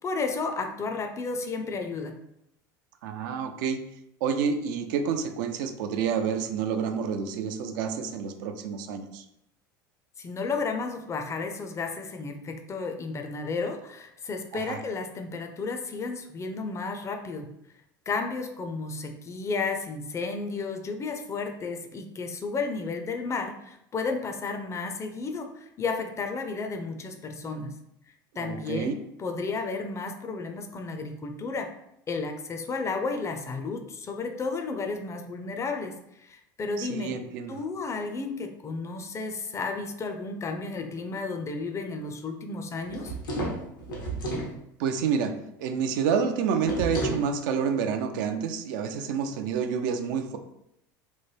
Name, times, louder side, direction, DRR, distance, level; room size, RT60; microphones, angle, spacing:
voice 1, 0.0-2.2 10.2-17.5 18.1-27.8 28.4-31.7 32.1-37.2 37.5-43.1, left 4 dB, 25° left, 5 dB, 0.4 m, -33 dB
voice 2, 3.0-3.8 4.2-9.2 14.5-14.8 28.4-28.9 36.8-37.6 44.8-50.4, right 6 dB, 70° right, 7 dB, 0.4 m, -29 dB
sound 1, 42.9-44.5 46.6-47.3, right 2 dB, 90° left, 0.8 m, -31 dB
3.1 x 2.1 x 3.1 m, 0.80 s
hypercardioid pair, 85°, 11 cm